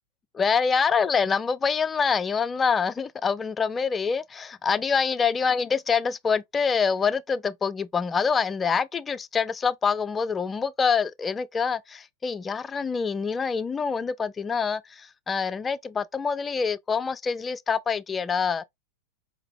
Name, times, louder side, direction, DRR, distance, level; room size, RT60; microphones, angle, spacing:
voice 1, 0.3-18.6, left 5 dB, 20° left, 0.3 m, -26 dB
4.9 x 2.6 x 2.4 m
figure-of-eight pair, 90°, 0 cm